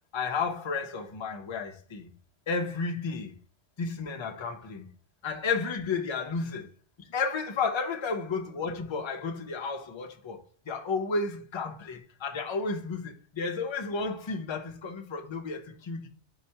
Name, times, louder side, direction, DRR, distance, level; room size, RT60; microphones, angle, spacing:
voice 1, 0.1-2.1 2.5-3.3 3.8-4.9 5.2-6.7 7.0-16.1, left 4 dB, 40° left, 0.4 m, -32 dB
4.4 x 3.9 x 2.8 m
omnidirectional pair, 1.2 m